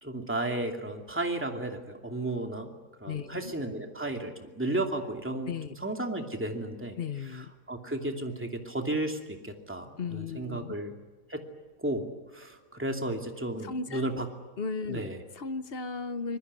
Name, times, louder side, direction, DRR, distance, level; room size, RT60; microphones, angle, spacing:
voice 1, 0.0-2.7 3.0-5.5 5.8-7.0 7.3-10.9 11.3-11.4 11.8-14.3 14.9-15.2, right 1 dB, 5° right, 3 dB, 2.5 m, -33 dB
voice 2, 3.1-3.5 5.5-5.7 7.0-7.5 10.0-10.7 13.6-14.0 14.6-16.4, left 5 dB, 45° left, 12 dB, 1.0 m, -35 dB
25.0 x 21.0 x 9.6 m, 1.2 s
omnidirectional pair, 1.8 m